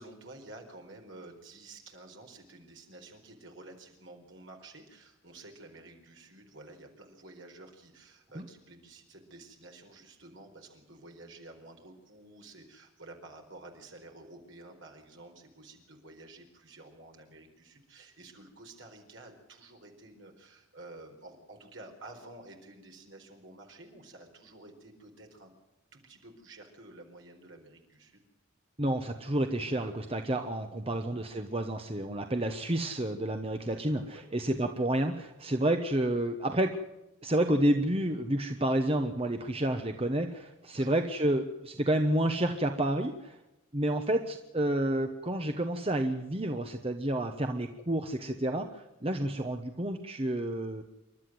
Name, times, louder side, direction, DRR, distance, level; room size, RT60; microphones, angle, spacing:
voice 1, 0.0-25.5 25.9-28.2 30.8-31.0 33.7-34.3 40.7-40.9, right 2 dB, 60° right, 3 dB, 4.6 m, -51 dB
voice 2, 28.8-36.8 37.2-43.4 43.7-50.8, right 1 dB, 25° right, 6 dB, 1.1 m, -30 dB
28.0 x 12.5 x 7.8 m, 0.98 s
head